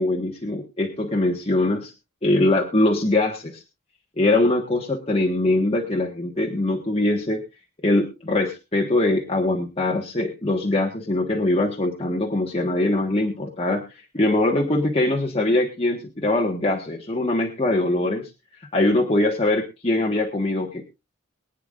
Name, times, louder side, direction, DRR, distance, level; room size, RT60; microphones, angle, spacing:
voice 1, 0.0-1.9 2.2-3.6 4.2-7.4 7.8-18.3 18.7-20.8, left 2 dB, 30° left, 0 dB, 1.5 m, -22 dB
23.0 x 9.3 x 2.5 m, 0.27 s
head